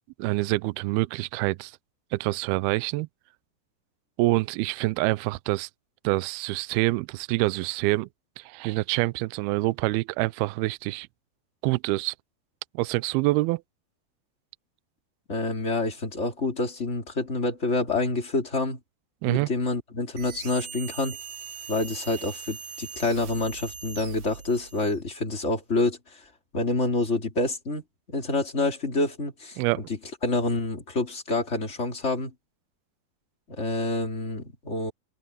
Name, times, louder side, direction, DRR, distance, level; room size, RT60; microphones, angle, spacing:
voice 1, 0.2-1.7 2.1-3.1 4.2-5.7 6.0-8.1 8.4-11.1 11.6-12.2 12.7-13.6 19.2-19.5 29.6-29.8, right 21 dB, 85° right, 2.2 m, -26 dB
voice 2, 15.3-18.8 19.2-21.2 21.7-26.2 26.5-27.8 28.1-29.8 30.2-32.3 33.5-34.9, left 2 dB, 20° left, 2.9 m, -27 dB
sound 1, 20.2-25.0, right 7 dB, 55° right, 2.2 m, -41 dB
omnidirectional pair, 5.0 m